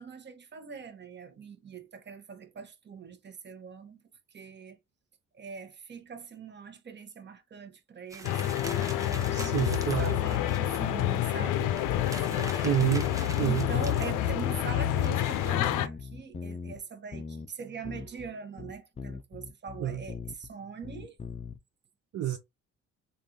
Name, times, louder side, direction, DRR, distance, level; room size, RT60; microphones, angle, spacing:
voice 1, 0.0-4.0 4.3-4.8 5.3-12.7 13.4-21.2, right 6 dB, 35° right, 1.0 m, -42 dB
sound 1, 8.1-10.8 11.2-11.3 11.6-15.5, right 2 dB, 10° right, 0.9 m, -44 dB
sound 2, 8.2-15.9, left 12 dB, 80° left, 0.5 m, -28 dB
voice 2, 9.3-10.2 12.6-13.0 13.4-13.7 19.8-20.0 22.1-22.4, right 12 dB, 55° right, 0.6 m, -28 dB
sound 3, 15.6-16.8 17.1-17.5 17.8-18.3 18.6-20.5 20.8-21.6, left 5 dB, 20° left, 0.4 m, -41 dB
3.3 x 2.5 x 2.8 m
cardioid pair, 85°, 30 cm